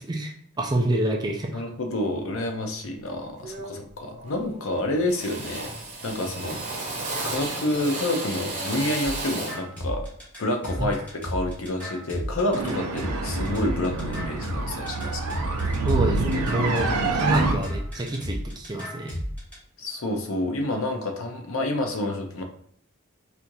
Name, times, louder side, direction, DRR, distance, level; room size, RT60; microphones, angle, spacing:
voice 1, 0.0-1.6 10.8-10.9 15.8-19.2, right 1 dB, 20° right, 1 dB, 0.4 m, -27 dB
voice 2, 1.5-5.7 6.0-6.6 7.1-10.0 10.4-15.6 19.8-22.4, left 1 dB, 60° left, 3 dB, 0.6 m, -28 dB
Drill, 2.8-3.0 3.4-3.9 4.2-4.7 5.1-9.7, right 2 dB, 35° right, 0.8 m, -33 dB
sound 1, 9.0-19.5, equal, 5° left, 1.3 m, -33 dB
sound 2, 12.5-17.5, right 3 dB, 85° right, 0.6 m, -26 dB
4.3 x 2.5 x 2.6 m, 0.62 s
head